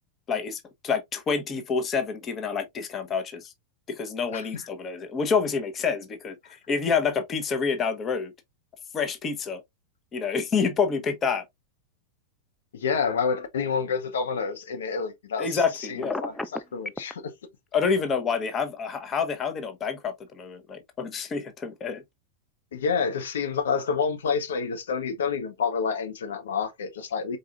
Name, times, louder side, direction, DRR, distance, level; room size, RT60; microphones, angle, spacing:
voice 1, 0.3-3.5 3.9-6.4 6.7-8.3 8.9-9.6 10.1-11.4 15.4-16.2 17.7-22.0, left 5 dB, 25° left, 1.0 m, -28 dB
voice 2, 4.3-4.7 12.7-17.3 22.7-27.4, left 6 dB, 65° left, 0.8 m, -28 dB
Telephone, 16.0-17.1, left 1 dB, 5° left, 0.4 m, -32 dB
4.8 x 4.0 x 2.5 m
figure-of-eight pair, 90°, 0 cm